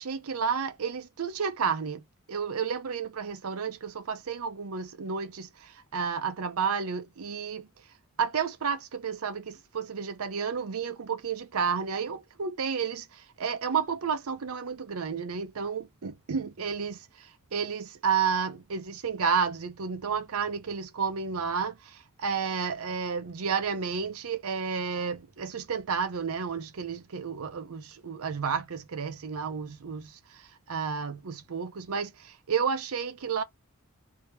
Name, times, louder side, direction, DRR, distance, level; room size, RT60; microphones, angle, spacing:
voice 1, 0.0-2.0 2.3-7.7 8.2-30.4 30.7-33.4, right 6 dB, 80° right, 0.6 m, -31 dB
2.8 x 2.8 x 3.2 m
head